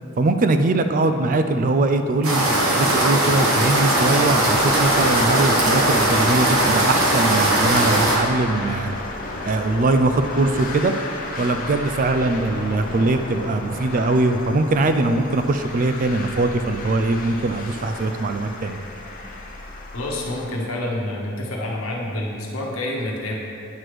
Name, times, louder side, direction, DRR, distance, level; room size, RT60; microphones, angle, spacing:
voice 1, 0.2-2.4 2.7-8.9 9.5-10.9 11.4-18.8, right 2 dB, 40° right, 8 dB, 0.4 m, -21 dB
sound 1, 2.2-8.2, right 1 dB, 85° right, 1.3 m, -19 dB
sound 2, 4.4-20.5, left 2 dB, 45° left, 0.8 m, -33 dB
voice 2, 19.9-23.4, left 1 dB, 80° left, -2 dB, 1.2 m, -28 dB
9.3 x 3.2 x 6.0 m, 2.6 s
head